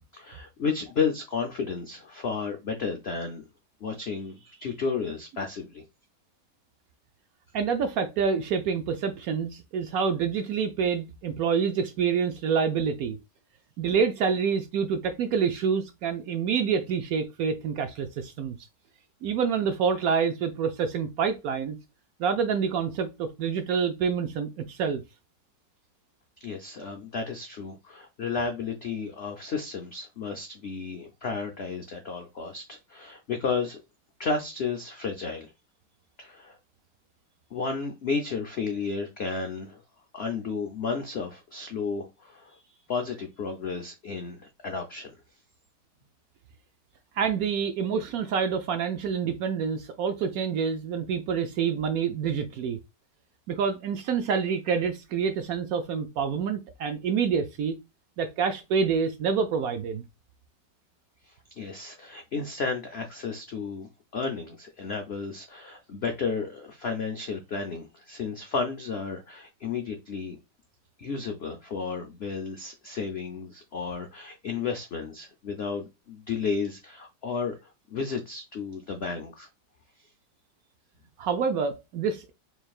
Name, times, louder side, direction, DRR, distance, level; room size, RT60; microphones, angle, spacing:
voice 1, 0.1-3.4 3.8-5.8 26.4-33.8 34.2-35.5 36.2-36.6 37.5-39.8 40.1-42.6 42.9-45.1 61.2-70.4 71.0-77.6 77.9-79.5, left 5 dB, 75° left, 0.5 m, -32 dB
voice 2, 7.5-13.2 13.8-18.6 19.2-21.8 22.2-25.0 47.2-52.8 53.5-57.8 58.2-60.0 81.2-82.3, right 6 dB, 70° right, 0.9 m, -27 dB
4.5 x 3.2 x 2.3 m
omnidirectional pair, 1.9 m